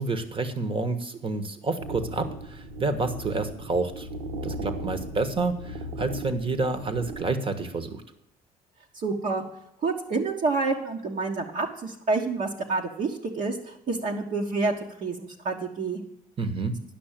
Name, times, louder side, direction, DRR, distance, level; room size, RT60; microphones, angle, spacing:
voice 1, 0.0-4.1 4.4-8.0 16.4-16.8, right 3 dB, 30° right, 11 dB, 1.4 m, -29 dB
sound 1, 1.8-7.2, right 1 dB, 80° right, 1.3 m, -37 dB
voice 2, 8.9-9.4 9.8-14.7 15.0-16.0, right 3 dB, 50° right, 0 dB, 1.5 m, -28 dB
10.5 x 6.1 x 7.5 m, 0.79 s
cardioid pair, 110°, 17 cm